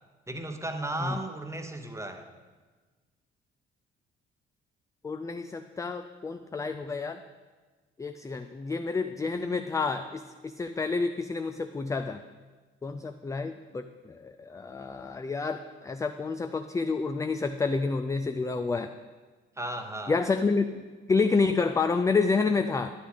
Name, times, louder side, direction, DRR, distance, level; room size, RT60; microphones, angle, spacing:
voice 1, 0.3-2.3 19.6-20.2, right 1 dB, 10° right, 6 dB, 0.9 m, -35 dB
voice 2, 5.0-7.2 8.0-12.2 12.8-18.9 20.1-22.9, left 4 dB, 10° left, 8 dB, 0.3 m, -29 dB
11.0 x 6.1 x 3.8 m, 1.3 s
hypercardioid pair, 45°, 30 cm